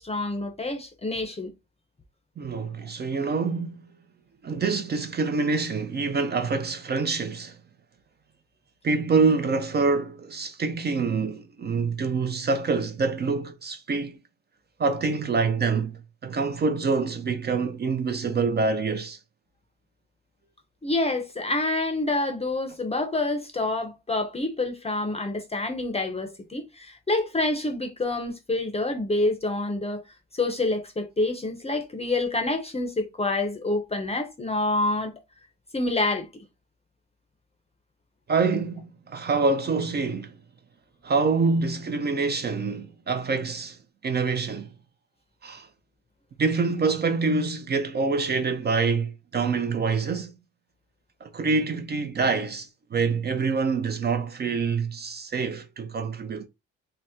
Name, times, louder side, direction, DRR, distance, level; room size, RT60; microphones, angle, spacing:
voice 1, 0.0-1.5 20.8-30.0 30.3-35.1 35.7-36.3, left 2 dB, 20° left, 0.6 m, -27 dB
voice 2, 2.4-3.8 4.4-7.6 8.8-14.2 14.8-19.2 38.3-40.3 41.0-43.8 44.0-44.7 45.4-45.7 46.4-50.3 51.2-56.5, right 4 dB, 35° right, 0.5 m, -26 dB
2.8 x 2.0 x 3.5 m
cardioid pair, 90°, 30 cm